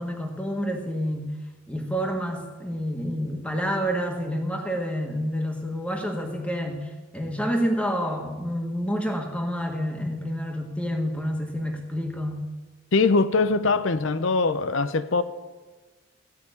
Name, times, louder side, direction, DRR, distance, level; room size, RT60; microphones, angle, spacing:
voice 1, 0.0-1.3 1.7-12.4, equal, 5° left, 1.6 m, -28 dB
voice 2, 12.9-15.2, left 3 dB, 65° left, 0.6 m, -22 dB
15.5 x 5.8 x 9.1 m
head